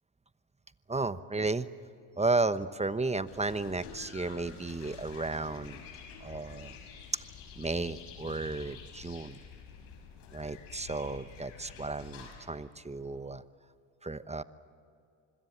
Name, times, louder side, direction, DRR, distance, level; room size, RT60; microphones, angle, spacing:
voice 1, 0.9-1.7 2.2-5.8 6.2-6.8 7.6-9.4 10.3-13.4 14.0-14.4, right 3 dB, 15° right, 14 dB, 1.0 m, -33 dB
sound 1, 3.3-12.5, left 6 dB, 70° left, 6.4 m, -49 dB
26.0 x 21.5 x 7.4 m, 2.5 s
hypercardioid pair, 65°, 49 cm